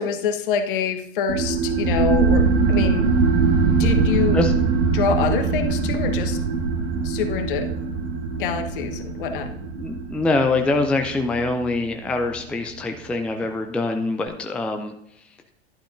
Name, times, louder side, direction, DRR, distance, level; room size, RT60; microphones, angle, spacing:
voice 1, 0.0-3.1 3.8-4.4 4.9-6.4 7.0-7.7 8.4-9.5, left 7 dB, 50° left, 8 dB, 1.1 m, -25 dB
sound 1, 1.3-12.4, right 4 dB, 55° right, 2.4 m, -22 dB
voice 2, 9.8-14.9, left 2 dB, 5° left, 5 dB, 0.4 m, -24 dB
11.5 x 11.0 x 2.6 m, 0.78 s
figure-of-eight pair, 90°, 33 cm